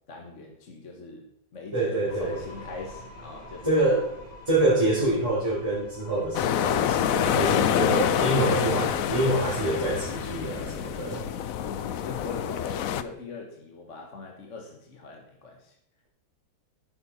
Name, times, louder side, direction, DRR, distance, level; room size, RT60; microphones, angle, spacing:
voice 1, 0.1-1.3 1.5-3.8 7.3-8.2 11.6-15.7, left 3 dB, 40° left, 1 dB, 1.7 m, -40 dB
voice 2, 1.7-2.4 3.6-4.1 4.5-11.2, right 2 dB, 15° right, -10 dB, 4.3 m, -26 dB
sound 1, 2.1-12.2, equal, 45° right, 5.6 m, -44 dB
sound 2, 6.3-13.0, left 10 dB, 70° left, 0.8 m, -27 dB
11.5 x 9.8 x 4.3 m, 0.77 s
omnidirectional pair, 2.1 m